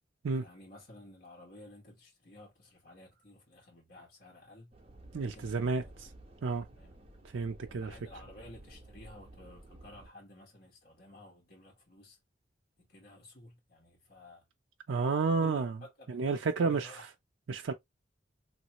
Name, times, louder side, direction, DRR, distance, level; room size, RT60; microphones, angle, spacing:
voice 1, 0.4-4.7 5.2-5.9 6.7-6.9 7.7-12.2 12.8-14.4 15.4-17.1, left 1 dB, 55° left, 1.5 m, -53 dB
sound 1, 4.7-10.1, right 1 dB, 30° right, 0.9 m, -53 dB
voice 2, 5.1-6.1 6.4-6.7 7.3-8.0 14.9-15.7 16.1-16.9 17.5-17.7, right 4 dB, 85° right, 0.4 m, -31 dB
3.0 x 2.7 x 2.8 m
head